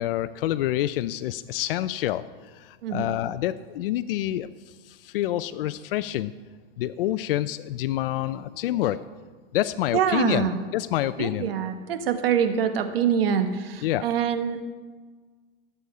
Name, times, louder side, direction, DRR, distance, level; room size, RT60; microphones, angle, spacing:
voice 1, 0.0-6.3 6.8-9.1 9.5-11.5 13.8-14.1, left 13 dB, 70° left, 12 dB, 0.5 m, -27 dB
voice 2, 2.8-3.1 9.9-10.6 11.2-14.6, right 8 dB, 75° right, 8 dB, 1.3 m, -25 dB
18.0 x 7.0 x 4.9 m, 1.4 s
supercardioid pair, 155°, 30 cm